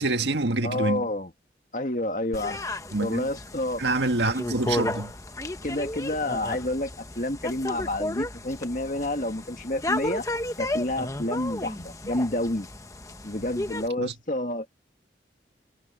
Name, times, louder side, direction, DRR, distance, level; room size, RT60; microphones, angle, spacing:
voice 1, 0.0-1.1 2.9-3.3 3.8-5.1 14.0-14.1, right 2 dB, 75° right, 1.8 m, -26 dB
voice 2, 0.6-1.3 1.7-2.6 3.0-3.8 5.6-6.9 7.2-10.2 10.6-12.7 13.2-14.7, left 1 dB, 45° left, 2.0 m, -29 dB
sound 1, 2.3-13.9, left 1 dB, 20° left, 1.0 m, -33 dB
head